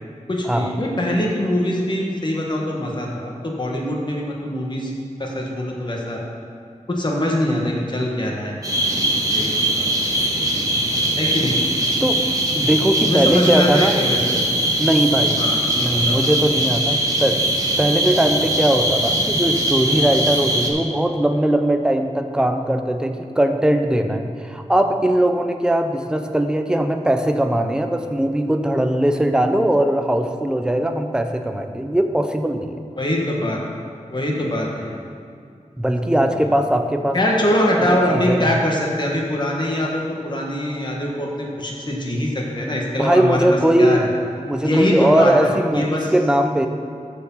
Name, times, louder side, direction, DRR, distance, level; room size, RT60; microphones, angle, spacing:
voice 1, 0.3-4.9 5.2-6.2 6.9-8.6 9.3-9.9 11.2-11.5 13.0-14.4 15.4-15.6 15.9-16.2 33.0-33.6 34.1-35.0 37.1-43.4 43.8-44.1 44.6-46.1, left 1 dB, 35° left, -2 dB, 1.6 m, -23 dB
sound 1, 8.6-20.7, right 1 dB, 25° right, 1.4 m, -21 dB
voice 2, 12.6-13.9 14.8-15.4 15.7-17.5 17.8-32.7 35.8-37.2 37.8-38.5 43.0-44.0 44.5-46.7, right 1 dB, 5° right, 6 dB, 0.6 m, -20 dB
13.0 x 4.7 x 5.6 m, 2.4 s
wide cardioid pair, 95°, 13 cm